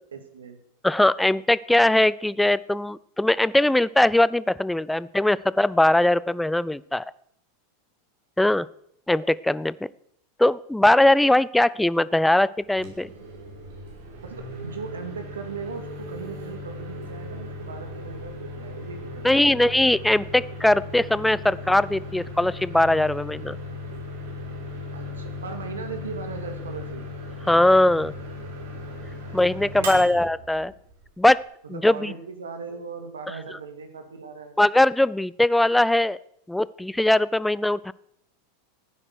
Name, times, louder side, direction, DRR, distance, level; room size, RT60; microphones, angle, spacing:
voice 1, 0.1-0.6 14.2-19.5 24.9-27.1 29.6-30.3 30.5-30.7 31.6-34.6, right 5 dB, 90° right, 6 dB, 2.2 m, -38 dB
voice 2, 0.8-7.0 8.4-8.7 9.1-9.9 10.4-13.1 19.2-23.6 27.5-28.1 29.3-30.7 31.2-31.4 31.7-32.1 34.6-36.2 36.5-37.9, left 1 dB, 5° left, 20 dB, 0.5 m, -20 dB
Microwave oven, 12.7-31.4, left 2 dB, 75° right, 5.6 m, -37 dB
15.0 x 9.8 x 6.6 m, 0.73 s
hypercardioid pair, 100°, 0 cm